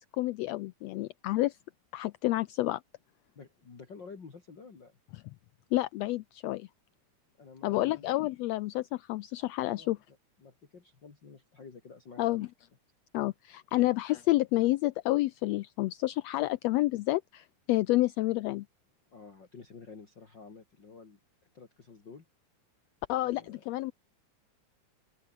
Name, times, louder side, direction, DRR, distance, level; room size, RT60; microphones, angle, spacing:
voice 1, 0.0-1.6 1.9-2.8 5.7-6.7 7.6-10.0 12.2-12.5 13.1-18.6 23.1-23.9, left 18 dB, 85° left, 1.5 m, -29 dB
voice 2, 3.3-5.0 7.4-8.1 9.7-12.5 13.7-13.9 19.1-21.2 21.5-22.2 23.2-23.6, left 5 dB, 35° left, 3.1 m, -51 dB
open air
omnidirectional pair, 3.5 m